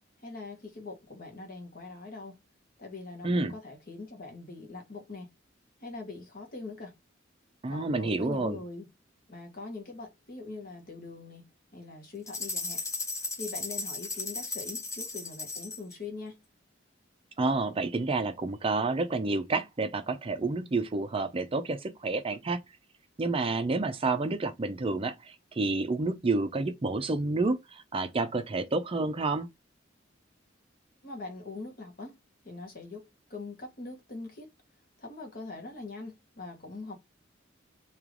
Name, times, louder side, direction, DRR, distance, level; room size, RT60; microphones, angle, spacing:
voice 1, 0.2-2.4 2.8-5.3 5.8-7.0 7.7-8.9 9.3-11.5 11.7-12.8 13.4-16.4 31.0-32.1 32.4-33.0 33.3-34.5 35.0-37.0, left 3 dB, 50° left, 1.4 m, -42 dB
voice 2, 7.6-8.6 17.4-22.6 23.2-29.5, right 3 dB, 30° right, 0.5 m, -29 dB
sound 1, 12.3-15.9, left 3 dB, 15° left, 0.8 m, -36 dB
3.2 x 2.9 x 3.7 m
head